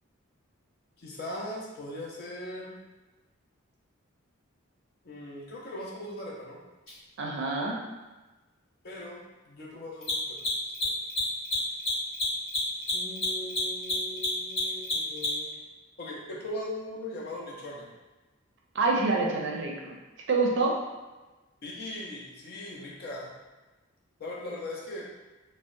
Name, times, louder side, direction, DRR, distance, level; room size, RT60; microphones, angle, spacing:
voice 1, 1.0-2.8 5.0-6.6 8.8-10.5 10.8-10.9 12.9-15.5 16.0-17.9 21.6-23.3 24.2-25.1, left 1 dB, 50° left, -3 dB, 0.5 m, -39 dB
Mechanisms, 6.9-7.0 9.9-15.5, left 2 dB, 65° left, 1.1 m, -29 dB
voice 2, 7.2-7.8 18.7-20.0 20.3-20.8, right 3 dB, 60° right, 0 dB, 0.4 m, -26 dB
2.7 x 2.0 x 2.5 m, 1.1 s
head